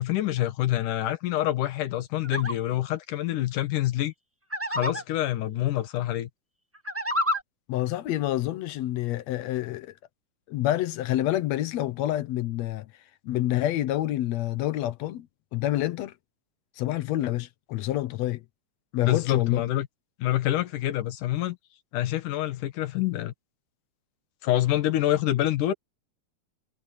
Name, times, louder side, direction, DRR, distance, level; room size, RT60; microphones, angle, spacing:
voice 1, 0.0-4.1 4.7-6.3 19.0-19.9 20.2-21.6 21.9-23.3 24.4-25.7, left 14 dB, 90° left, 2.8 m, -26 dB
sound 1, 2.2-2.5 4.5-5.0 6.7-7.4, left 1 dB, 15° right, 0.5 m, -28 dB
voice 2, 7.7-9.9 10.5-12.9 13.2-15.3 15.5-16.1 16.8-18.4 18.9-19.6, left 14 dB, 70° left, 1.9 m, -28 dB
omnidirectional pair, 3.5 m